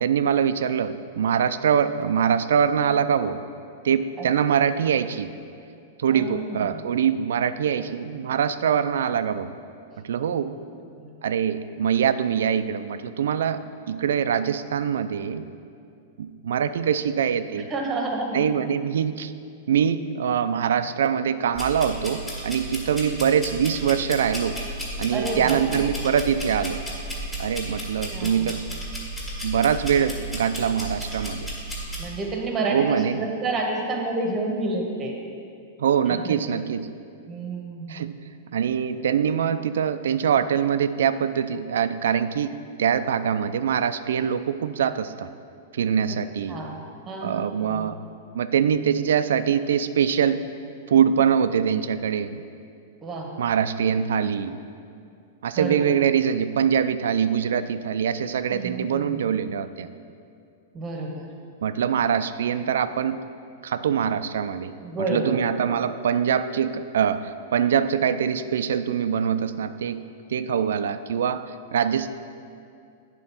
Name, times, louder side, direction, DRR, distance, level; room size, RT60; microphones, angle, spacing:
voice 1, 0.0-3.4 3.8-5.3 6.0-9.5 10.0-10.5 11.2-15.5 16.2-17.7 18.3-19.3 19.7-24.6 25.0-26.8 27.4-28.7 29.4-31.5 32.7-33.2 35.8-36.9 37.9-38.2 38.5-45.3 45.7-46.6 47.2-48.0 48.3-50.4 50.9-52.4 53.4-54.6 55.4-59.9 61.6-63.2 63.6-64.7 65.1-70.0 70.3-72.1, right 8 dB, 85° right, 12 dB, 0.3 m, -23 dB
voice 2, 6.1-6.9 10.7-11.1 17.6-18.4 25.1-25.6 27.7-27.8 28.1-28.5 32.0-35.1 36.1-36.6 37.3-38.0 46.1-46.2 46.5-47.9 53.0-53.3 55.6-56.0 58.5-59.3 60.7-61.3 64.8-65.4, right 2 dB, 20° right, 1 dB, 1.0 m, -30 dB
sound 1, 21.5-32.0, right 1 dB, 10° left, 1.6 m, -33 dB
8.9 x 3.8 x 5.7 m, 2.4 s
supercardioid pair, 155°, 0 cm